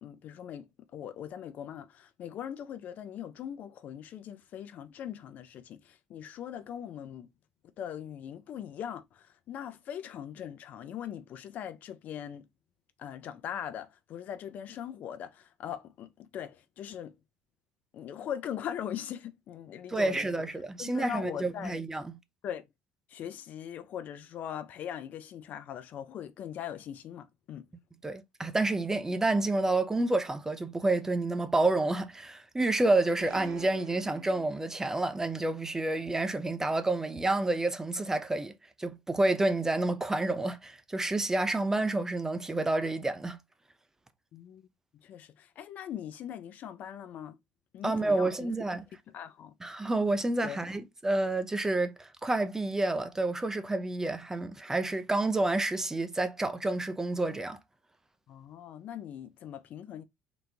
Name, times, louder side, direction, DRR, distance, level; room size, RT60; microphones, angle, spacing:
voice 1, 0.0-7.3 7.8-12.5 13.0-17.2 17.9-20.3 20.8-21.8 22.4-22.7 23.1-27.7 44.3-44.6 45.0-47.4 47.7-48.6 49.1-49.5 50.4-50.6 58.3-60.0, left 9 dB, 55° left, 0.7 m, -40 dB
voice 2, 19.9-22.1 28.0-38.5 38.8-43.4 47.8-48.8 49.6-57.6, right 2 dB, 15° right, 0.7 m, -29 dB
sound 1, 33.2-35.2, right 7 dB, 75° right, 1.5 m, -48 dB
4.1 x 2.9 x 3.4 m
hypercardioid pair, 70°, 3 cm